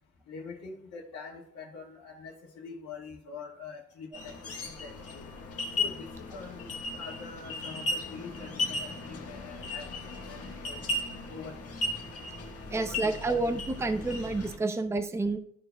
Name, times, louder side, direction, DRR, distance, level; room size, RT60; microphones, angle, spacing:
voice 1, 0.3-4.3 4.6-5.3 5.8-9.9 10.2-10.8 11.3-11.7 12.7-13.2, left 5 dB, 80° left, -6 dB, 1.6 m, -45 dB
sound 1, 4.1-14.6, left 2 dB, 50° left, 1.5 m, -36 dB
voice 2, 12.7-15.4, right 2 dB, 10° right, 8 dB, 0.6 m, -29 dB
13.5 x 4.6 x 2.3 m, 0.69 s
cardioid pair, 90°, 30 cm